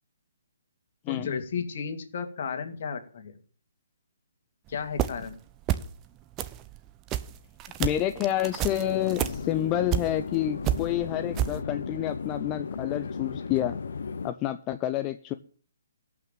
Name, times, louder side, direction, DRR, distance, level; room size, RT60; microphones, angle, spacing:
voice 1, 1.1-3.3 4.7-5.4, left 6 dB, 50° left, 7 dB, 2.5 m, -33 dB
sound 1, 4.7-5.4 5.6-6.1 6.3-10.4 10.6-11.6, right 12 dB, 20° right, 0.7 m, -30 dB
voice 2, 7.8-13.8 14.2-15.3, left 13 dB, 20° left, 8 dB, 0.5 m, -29 dB
sound 2, 8.8-14.3, left 5 dB, 70° left, 1.1 m, -35 dB
15.0 x 6.0 x 9.1 m, 0.43 s
hypercardioid pair, 160°, 0 cm